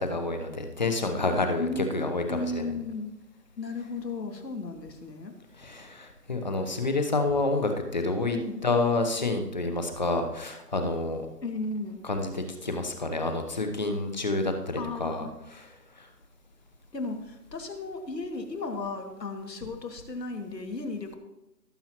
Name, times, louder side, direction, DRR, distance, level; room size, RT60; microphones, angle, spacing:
voice 1, 0.0-2.7 5.6-8.4 8.6-11.3 12.0-15.7 16.0-16.1, left 2 dB, 30° left, 6 dB, 0.8 m, -29 dB
voice 2, 1.6-3.1 3.6-5.3 8.4-8.6 11.4-12.0 14.8-15.3 16.9-21.2, left 3 dB, 85° left, 3 dB, 2.4 m, -35 dB
18.0 x 7.8 x 3.0 m, 0.96 s
hypercardioid pair, 165°, 48 cm